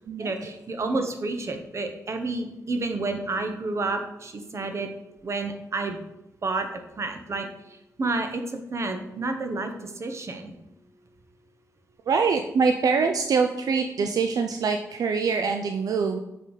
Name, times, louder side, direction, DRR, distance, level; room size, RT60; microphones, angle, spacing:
voice 1, 0.2-4.9 5.2-6.0 6.4-6.7 7.0-7.5 8.0-8.4 8.7-10.5, right 3 dB, 50° right, 6 dB, 0.9 m, -30 dB
voice 2, 12.1-16.2, right 5 dB, 75° right, 5 dB, 0.4 m, -24 dB
7.2 x 3.8 x 4.0 m, 0.88 s
cardioid pair, 85°, 6 cm